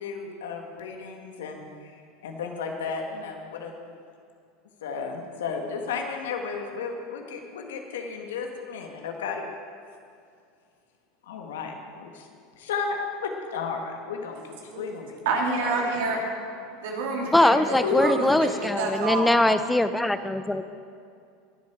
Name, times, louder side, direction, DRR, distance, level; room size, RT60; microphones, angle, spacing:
voice 1, 0.0-3.7 4.8-9.4 11.3-12.3 12.6-15.2 15.6-15.7 16.1-16.3 17.8-18.1, left 5 dB, 85° left, 3 dB, 1.6 m, -33 dB
voice 2, 15.2-16.2 16.8-19.3, right 3 dB, 75° right, -1 dB, 2.9 m, -28 dB
voice 3, 17.3-20.6, left 1 dB, 5° left, 11 dB, 0.5 m, -22 dB
20.5 x 7.6 x 4.5 m, 2.3 s
supercardioid pair, 105°, 0 cm